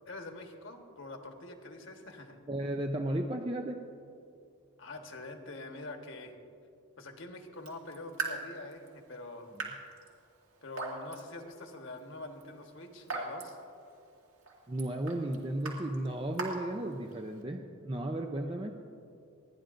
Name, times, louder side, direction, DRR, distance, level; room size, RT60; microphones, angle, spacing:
voice 1, 0.1-2.4 4.8-6.3 7.0-9.5 10.6-13.6 18.4-18.6, left 2 dB, 60° left, 3 dB, 1.3 m, -45 dB
voice 2, 2.5-3.8 14.7-18.7, right 1 dB, 25° right, 3 dB, 0.5 m, -34 dB
Raindrop / Drip, 7.5-17.4, right 4 dB, 70° right, 2.1 m, -43 dB
29.0 x 10.5 x 2.6 m, 2.5 s
head